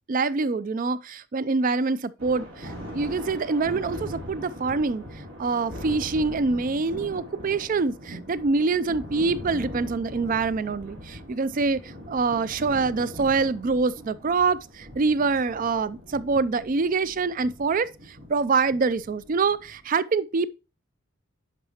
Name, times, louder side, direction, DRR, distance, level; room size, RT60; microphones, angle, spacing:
voice 1, 0.1-5.0 5.4-11.8 12.1-17.9 18.3-20.5, right 4 dB, 40° right, 0.4 m, -25 dB
Thunder, 2.2-19.9, equal, 75° right, 2.8 m, -41 dB
9.8 x 5.6 x 2.9 m
head